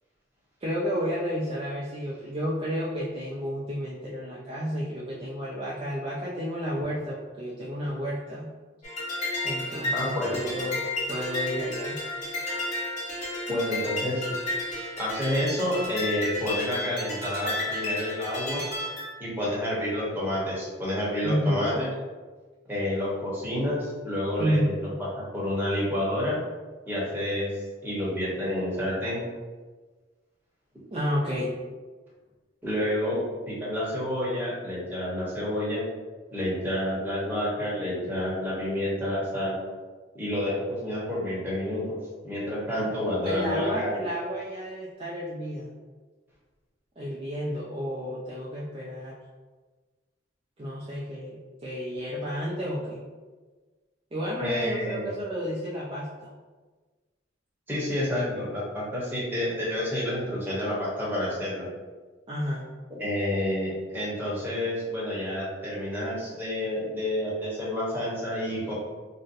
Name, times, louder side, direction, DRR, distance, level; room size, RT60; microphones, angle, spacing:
voice 1, 0.6-8.5 9.4-10.8 11.1-12.0 21.2-21.7 24.4-24.8 30.9-31.5 43.2-45.7 47.0-49.2 50.6-53.0 54.1-56.3 62.3-62.6, equal, 30° right, -6 dB, 0.3 m, -31 dB
sound 1, 8.8-19.1, left 1 dB, 40° left, 1.0 m, -32 dB
voice 2, 9.9-10.4 13.5-14.2 15.0-18.7 19.2-21.9 22.7-25.1 25.3-26.4 26.9-27.5 27.8-29.2 32.6-35.8 36.3-39.5 40.1-42.0 42.2-43.9 54.4-55.1 57.7-61.7 63.0-68.7, left 1 dB, 10° right, -7 dB, 0.8 m, -29 dB
2.5 x 2.0 x 3.9 m, 1.3 s
head